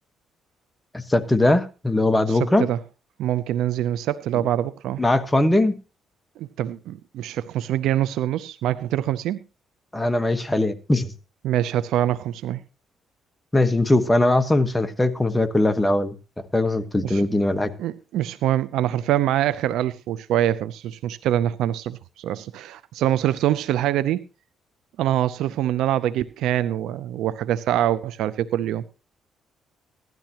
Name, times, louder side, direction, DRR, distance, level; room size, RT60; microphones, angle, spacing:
voice 1, 1.1-2.7 5.0-5.8 9.9-11.1 13.5-16.1 16.5-17.7, left 2 dB, 10° left, 1.3 m, -20 dB
voice 2, 3.2-5.0 6.4-9.4 11.4-12.6 17.0-17.3 17.8-24.2 25.0-28.8, right 12 dB, 85° right, 0.5 m, -24 dB
16.5 x 12.0 x 2.9 m
cardioid pair, 95°, 0 cm